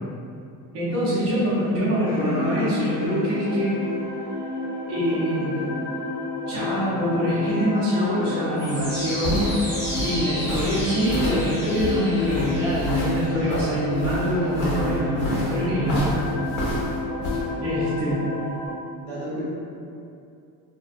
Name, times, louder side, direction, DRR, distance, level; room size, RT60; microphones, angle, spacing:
voice 1, 0.7-3.8 4.9-5.5 6.5-16.1 17.6-18.2, equal, 40° right, -10 dB, 0.5 m, -24 dB
sound 1, 2.0-18.7, left 2 dB, 10° left, 0.6 m, -30 dB
voice 2, 4.9-5.7 17.3-17.9 19.0-19.4, equal, 85° right, -10 dB, 1.3 m, -36 dB
sound 2, 8.8-17.4, equal, 50° left, 0.5 m, -29 dB
2.4 x 2.1 x 2.5 m, 2.5 s
cardioid pair, 175°, 40 cm